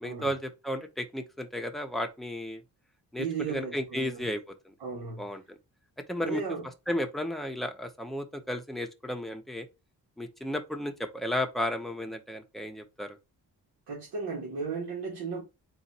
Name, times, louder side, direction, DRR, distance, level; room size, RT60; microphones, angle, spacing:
voice 1, 0.0-2.6 3.1-4.5 5.2-5.4 6.1-6.4 6.9-9.7 10.2-13.2, left 1 dB, ahead, 0.6 m, -33 dB
voice 2, 3.2-4.3 4.8-5.3 6.2-6.6 13.9-15.4, right 5 dB, 85° right, 1.4 m, -35 dB
4.0 x 2.5 x 4.0 m
cardioid pair, 110°, 38 cm